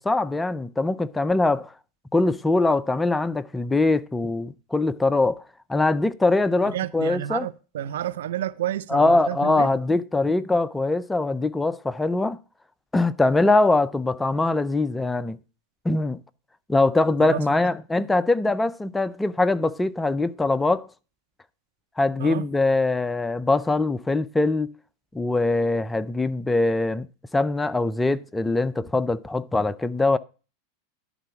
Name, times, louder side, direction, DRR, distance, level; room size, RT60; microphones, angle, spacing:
voice 1, 0.0-1.7 2.1-5.4 5.7-7.5 8.9-12.4 12.9-15.4 15.8-16.2 16.7-20.9 22.0-24.7 25.1-27.1 27.3-30.2, left 2 dB, 10° left, 0.4 m, -22 dB
voice 2, 6.6-9.7 17.2-17.5 22.2-22.5, right 11 dB, 80° right, 0.6 m, -30 dB
11.0 x 4.3 x 5.8 m
hypercardioid pair, 115°, 0 cm